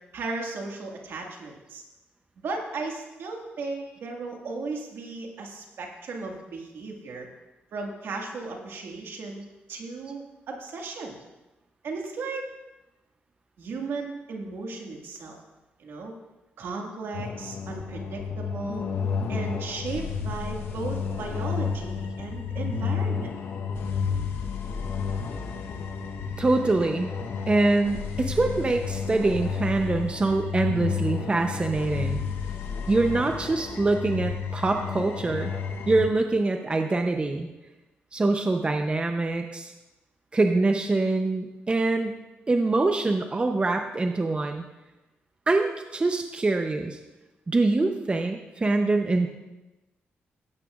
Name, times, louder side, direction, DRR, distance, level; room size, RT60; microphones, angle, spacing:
voice 1, 0.1-1.8 2.4-7.3 7.7-9.4 9.7-11.1 11.8-12.5 13.6-15.4 15.8-16.1 16.6-18.9 19.3-23.3, right 3 dB, 70° right, 1 dB, 1.9 m, -35 dB
sound 1, 17.1-36.1, left 6 dB, 75° left, 1.1 m, -31 dB
voice 2, 26.4-27.1 27.5-32.2 32.9-35.5 35.9-37.5 38.1-39.7 40.3-42.2 42.5-44.6 45.5-47.0 47.5-49.3, right 2 dB, 25° right, 4 dB, 0.7 m, -24 dB
16.0 x 8.8 x 2.5 m, 1.0 s
cardioid pair, 80°, 4 cm